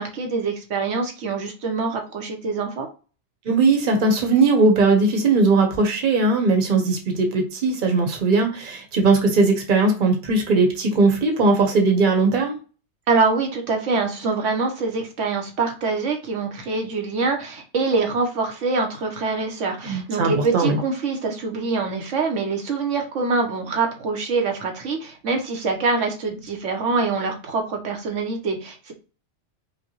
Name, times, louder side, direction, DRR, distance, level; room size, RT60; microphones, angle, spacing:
voice 1, 0.0-2.9 13.1-28.9, right 4 dB, 85° right, 3 dB, 1.2 m, -24 dB
voice 2, 3.4-12.5 19.8-20.8, right 3 dB, 45° right, 3 dB, 1.0 m, -19 dB
5.1 x 2.2 x 3.0 m, 0.34 s
omnidirectional pair, 1.2 m